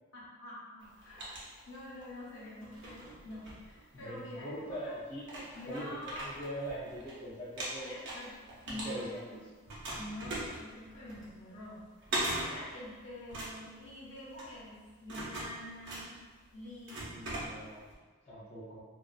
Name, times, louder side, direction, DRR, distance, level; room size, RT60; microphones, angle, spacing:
voice 1, 0.1-1.4 1.7-5.0 5.5-6.3 7.8-8.3 8.6-9.4 10.0-16.2 16.5-17.2, left 1 dB, 65° left, -7 dB, 0.8 m, -46 dB
sound 1, 0.8-2.1 2.6-4.3 4.9-5.0 5.2-7.1 7.4-9.3 9.7-17.9, right 1 dB, 55° right, 0.7 m, -40 dB
voice 2, 3.9-7.9 8.7-9.2 17.0-17.8 18.3-18.8, equal, 30° left, -9 dB, 0.4 m, -42 dB
2.4 x 2.3 x 2.3 m, 1.4 s
head